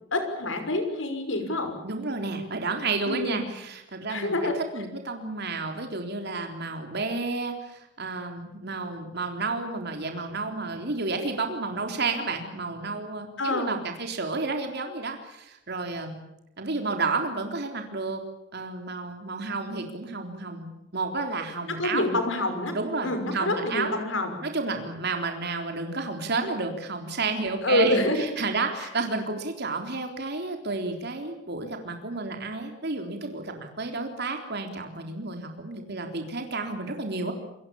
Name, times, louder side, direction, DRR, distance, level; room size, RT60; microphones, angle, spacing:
voice 1, 0.1-1.7 3.1-3.5 4.1-4.6 13.4-13.7 21.7-22.8 23.0-24.4 27.6-28.3, left 1 dB, 80° left, 7 dB, 5.9 m, -27 dB
voice 2, 1.8-4.3 4.7-16.2 16.6-18.2 18.5-22.1 22.7-24.0 24.4-37.3, right 3 dB, 60° right, 4 dB, 3.8 m, -31 dB
28.0 x 23.0 x 7.2 m, 0.84 s
head